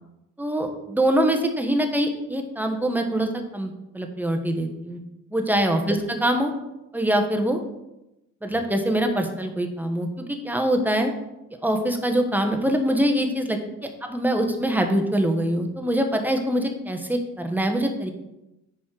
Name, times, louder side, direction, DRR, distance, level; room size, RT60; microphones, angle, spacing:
voice 1, 0.4-3.3 3.5-5.0 5.3-6.5 6.9-7.6 8.4-11.1 11.6-18.1, right 1 dB, 5° right, 4 dB, 1.2 m, -24 dB
9.5 x 4.2 x 4.8 m, 0.92 s
cardioid pair, 90°, 30 cm